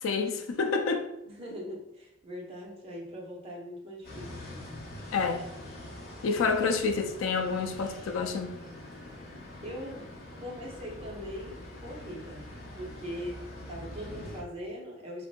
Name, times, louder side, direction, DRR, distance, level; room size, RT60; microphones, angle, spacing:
voice 1, 0.0-1.1 5.1-5.4 6.2-8.5, left 4 dB, 80° left, 0.4 m, -28 dB
voice 2, 1.3-4.3 9.6-12.5 12.8-15.3, equal, 30° right, 0.8 m, -41 dB
sound 1, 4.0-14.4, left 1 dB, 50° left, 0.8 m, -44 dB
3.6 x 2.5 x 2.2 m
head